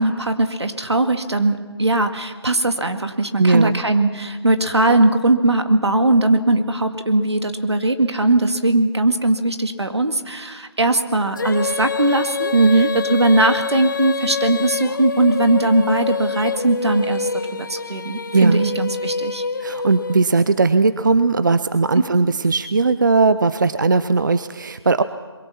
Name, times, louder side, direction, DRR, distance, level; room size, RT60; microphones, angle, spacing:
voice 1, 0.0-12.5 12.9-19.4, right 2 dB, 85° right, 7 dB, 2.1 m, -19 dB
voice 2, 3.4-3.8 12.5-12.9 18.3-18.7 19.6-25.0, right 4 dB, 45° right, 13 dB, 0.6 m, -17 dB
Female singing, 11.3-20.5, left 5 dB, 45° left, 0.8 m, -26 dB
25.5 x 22.5 x 5.9 m, 1.4 s
figure-of-eight pair, 165°, 14 cm